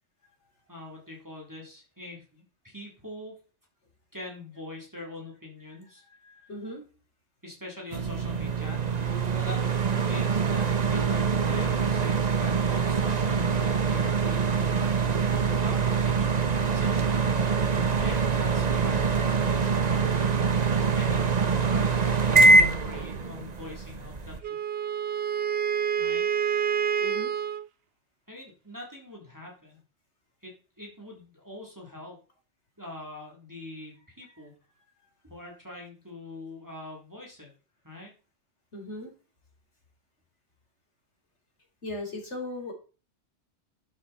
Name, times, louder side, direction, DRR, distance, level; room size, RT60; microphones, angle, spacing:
voice 1, 0.7-3.4 4.1-6.0 7.4-8.9 9.3-15.0 15.3-16.3 16.7-17.5 18.0-20.3 20.5-24.6 26.0-26.2 28.3-29.8 30.4-32.2 32.8-34.6 35.2-37.5 37.8-38.1, left 1 dB, 15° right, -2 dB, 3.5 m, -43 dB
voice 2, 6.2-6.8 27.0-27.3 38.7-39.1 41.8-42.7, left 1 dB, 65° left, 2 dB, 4.1 m, -37 dB
sound 1, 7.9-24.4, right 4 dB, 35° right, 1.1 m, -24 dB
Wind instrument woodwind instrument, 24.4-27.7, right 8 dB, 60° right, 1.0 m, -28 dB
12.0 x 8.9 x 4.4 m, 0.36 s
omnidirectional pair, 1.3 m